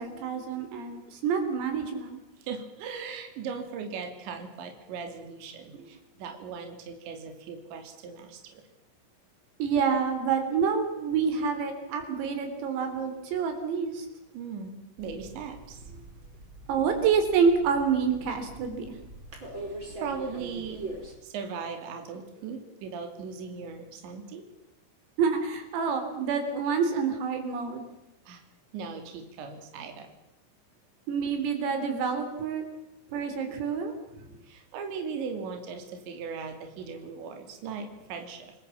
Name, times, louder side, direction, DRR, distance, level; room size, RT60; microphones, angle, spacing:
voice 1, 0.0-2.2 5.7-5.8 9.6-14.1 16.7-19.0 25.2-27.9 31.1-32.6 33.1-33.9, right 6 dB, 90° right, 7 dB, 6.3 m, -27 dB
voice 2, 2.4-8.6 14.3-15.8 19.6-20.8 21.2-24.4 28.3-28.4 28.7-30.1 34.4-38.5, right 5 dB, 65° right, 5 dB, 5.1 m, -38 dB
sound 1, 15.0-21.1, right 2 dB, 25° right, 5.1 m, -43 dB
29.5 x 20.5 x 7.4 m, 0.92 s
omnidirectional pair, 5.9 m